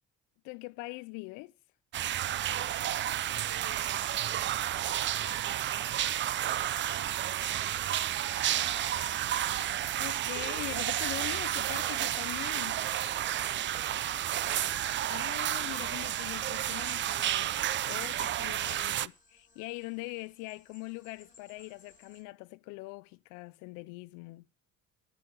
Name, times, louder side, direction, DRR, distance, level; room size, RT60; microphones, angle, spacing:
voice 1, 0.4-1.5 10.0-12.8 15.1-17.6 17.9-24.4, left 23 dB, 80° left, 0.5 m, -42 dB
sound 1, 1.9-19.1, right 12 dB, 40° right, 0.5 m, -31 dB
voice 2, 3.4-9.2 12.5-12.8 13.4-14.3, right 8 dB, 65° right, 2.1 m, -53 dB
sound 2, 5.1-22.2, left 2 dB, 25° left, 3.9 m, -57 dB
11.0 x 6.2 x 8.8 m
supercardioid pair, 95°, 30 cm